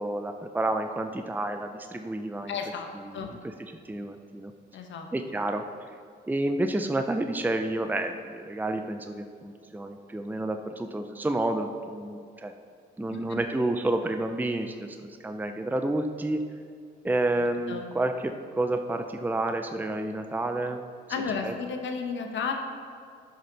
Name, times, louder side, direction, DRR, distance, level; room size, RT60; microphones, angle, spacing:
voice 1, 0.0-2.6 3.1-4.5 5.1-5.6 6.3-12.5 13.0-16.4 17.0-20.8 21.4-21.5, right 2 dB, 10° right, 6 dB, 0.6 m, -30 dB
voice 2, 2.5-2.9 3.1-3.3 4.7-5.1 13.1-13.4 17.4-17.8 21.1-22.5, left 5 dB, 70° left, 4 dB, 1.2 m, -33 dB
11.0 x 6.6 x 4.0 m, 2.3 s
supercardioid pair, 65°, 20 cm